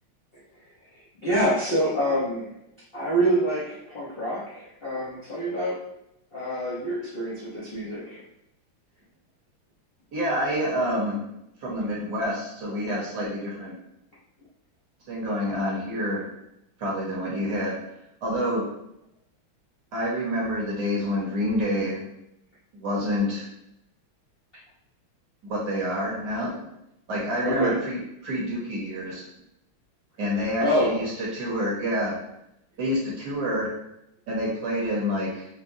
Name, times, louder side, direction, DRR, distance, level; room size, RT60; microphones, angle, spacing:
voice 1, 1.2-2.5 2.9-5.8 6.3-8.2 27.4-27.8 30.6-31.0, right 1 dB, 65° left, -8 dB, 0.5 m, -26 dB
voice 2, 10.1-11.2 11.6-13.7 15.1-16.2 16.8-17.7 18.2-18.7 19.9-22.0 22.7-23.5 25.4-26.7 27.1-29.2 30.2-32.1 32.8-33.7 34.3-35.5, equal, 60° right, -5 dB, 1.4 m, -27 dB
4.9 x 2.1 x 2.6 m, 0.83 s
omnidirectional pair, 2.3 m